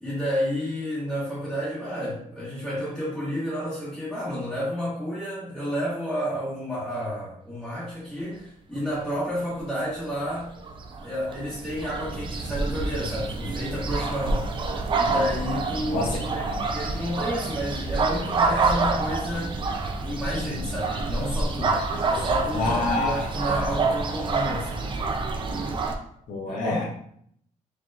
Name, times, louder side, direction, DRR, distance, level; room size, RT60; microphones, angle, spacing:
voice 1, 0.0-10.5 11.0-14.6 14.9-19.6 20.0-21.8 22.1-24.9 26.5-26.8, equal, ahead, -11 dB, 1.1 m, -31 dB
sound 1, 10.6-26.0, right 3 dB, 35° right, 0.4 m, -27 dB
voice 2, 22.5-23.2 26.3-26.8, left 2 dB, 65° left, -2 dB, 0.9 m, -27 dB
4.7 x 2.8 x 2.4 m, 0.66 s
cardioid pair, 155°, 14 cm